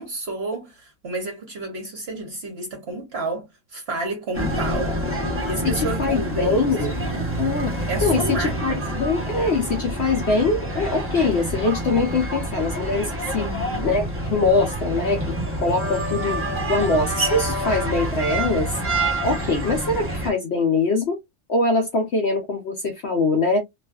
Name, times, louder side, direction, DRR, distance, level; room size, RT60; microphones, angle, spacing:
voice 1, 0.0-5.0 5.4-7.3 7.9-8.8 13.3-14.0, right 2 dB, 55° right, 0.8 m, -30 dB
sound 1, 4.3-20.3, right 1 dB, 20° right, 0.3 m, -27 dB
voice 2, 5.6-7.0 7.4-7.7 8.0-13.5 13.8-14.0 14.3-15.3 15.6-18.8 19.2-21.2 21.5-23.6, left 3 dB, 60° left, 0.7 m, -23 dB
2.5 x 2.3 x 2.2 m
omnidirectional pair, 1.6 m